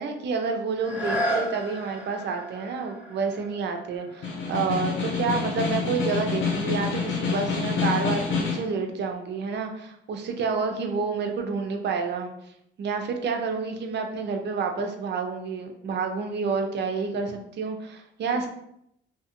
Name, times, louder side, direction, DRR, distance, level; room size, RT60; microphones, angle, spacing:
voice 1, 0.0-12.3 12.8-18.5, right 5 dB, 60° right, 4 dB, 0.5 m, -29 dB
sound 1, 0.7-6.4 7.0-7.1, equal, 5° right, 1.3 m, -34 dB
Snare drum, 4.1-8.7, left 5 dB, 70° left, 0.8 m, -27 dB
2.7 x 2.3 x 2.8 m, 0.74 s
cardioid pair, 90°, 20 cm